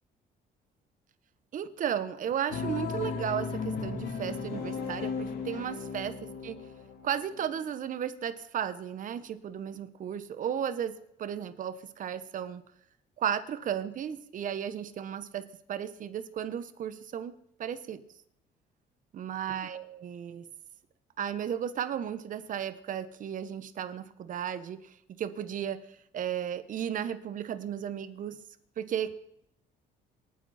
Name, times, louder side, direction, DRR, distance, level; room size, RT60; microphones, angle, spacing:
voice 1, 1.5-6.6 7.0-12.6 13.2-17.3 17.6-18.0 19.1-20.4 21.2-28.4 28.8-29.1, right 9 dB, 50° right, 12 dB, 1.3 m, -34 dB
sound 1, 2.5-7.7, left 5 dB, 85° left, 2.1 m, -36 dB
27.0 x 9.6 x 4.4 m, 0.76 s
cardioid pair, 110°, 17 cm